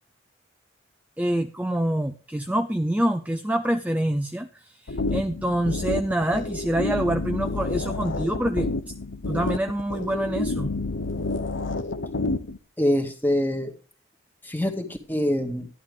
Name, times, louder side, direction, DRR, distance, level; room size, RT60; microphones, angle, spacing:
voice 1, 1.2-8.9 9.3-10.7, right 1 dB, 5° right, 7 dB, 0.5 m, -26 dB
sound 1, 4.9-12.6, left 2 dB, 65° left, 1.0 m, -29 dB
voice 2, 12.8-13.7 14.4-15.7, left 1 dB, 10° left, 4 dB, 1.9 m, -25 dB
13.0 x 11.5 x 3.4 m, 0.36 s
head